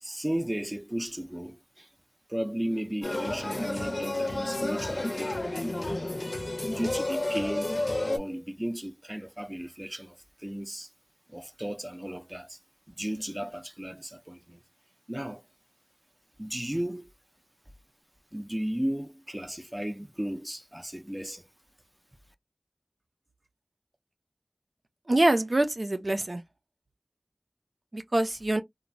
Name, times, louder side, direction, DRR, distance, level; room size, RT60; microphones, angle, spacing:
voice 1, 0.0-1.9 2.3-5.4 6.5-7.7 8.0-10.9 11.3-12.6 12.9-14.6 15.1-15.4 16.4-17.1 18.3-21.5, equal, 20° right, 0.4 m, -35 dB
sound 1, 3.0-8.2, left 2 dB, 80° left, 0.6 m, -31 dB
voice 2, 25.1-26.4 27.9-28.6, right 1 dB, 75° right, 0.4 m, -25 dB
3.0 x 2.1 x 2.5 m
wide cardioid pair, 40°, 0 cm